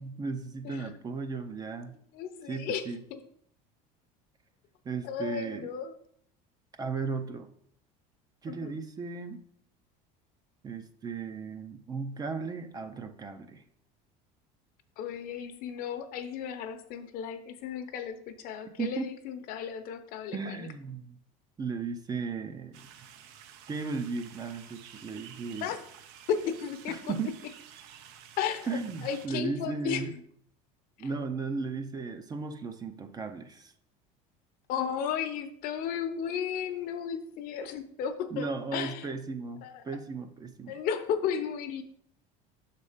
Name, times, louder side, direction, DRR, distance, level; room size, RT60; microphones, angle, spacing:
voice 1, 0.0-2.0 2.5-3.0 4.8-5.7 6.8-7.5 8.4-9.4 10.6-13.6 18.8-19.1 20.3-21.2 21.6-22.8 23.7-25.7 26.9-27.3 28.7-30.1 31.0-33.7 38.3-40.7, right 4 dB, 20° right, 8 dB, 0.5 m, -36 dB
voice 2, 2.1-2.8 3.1-3.2 5.0-5.9 8.5-8.7 15.0-20.7 25.6-25.8 26.3-27.1 28.4-30.0 31.0-31.1 34.7-39.1 39.6-39.8 40.7-41.8, left 8 dB, 55° left, 9 dB, 0.8 m, -34 dB
sound 1, 22.7-29.3, right 9 dB, 70° right, 0.7 m, -51 dB
6.3 x 4.1 x 5.0 m, 0.66 s
cardioid pair, 140°, 18 cm